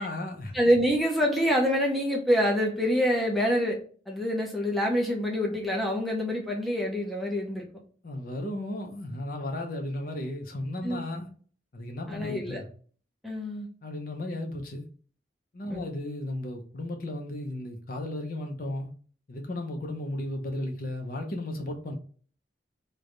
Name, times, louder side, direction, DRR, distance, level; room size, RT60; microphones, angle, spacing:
voice 1, 0.0-0.6 8.0-11.3 11.7-12.6 13.8-14.8 15.5-18.9 19.3-21.9, left 1 dB, 50° left, 0.6 m, -34 dB
voice 2, 0.5-3.8 4.1-7.7 10.8-11.0 12.1-12.6 13.2-13.7 15.7-15.8, equal, ahead, 0.5 m, -26 dB
3.3 x 2.2 x 3.7 m
head